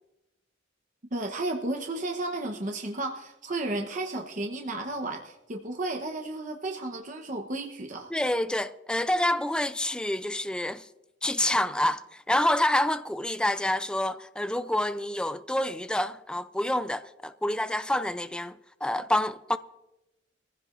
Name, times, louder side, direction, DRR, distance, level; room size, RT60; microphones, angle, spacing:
voice 1, 1.1-8.1, right 2 dB, 45° right, 1.0 m, -33 dB
voice 2, 8.1-10.9 11.2-18.5 18.8-19.6, left 1 dB, 5° left, 0.4 m, -27 dB
22.0 x 15.0 x 2.6 m
head